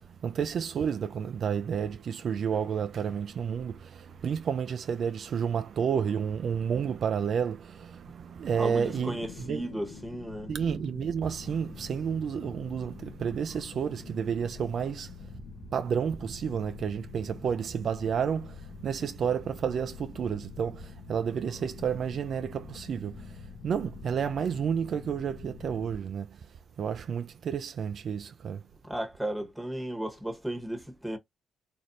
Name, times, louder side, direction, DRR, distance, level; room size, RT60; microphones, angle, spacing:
voice 1, 0.2-3.7 4.2-9.6 10.5-15.1 15.7-18.5 18.8-20.8 21.1-23.1 23.6-26.2 26.8-28.6, right 7 dB, 55° right, 0.3 m, -30 dB
voice 2, 8.5-10.6 28.8-31.2, right 1 dB, ahead, 1.1 m, -35 dB
sound 1, 8.9-25.9, left 5 dB, 85° left, 0.8 m, -46 dB
3.1 x 2.5 x 2.7 m
cardioid pair, 90°, 0 cm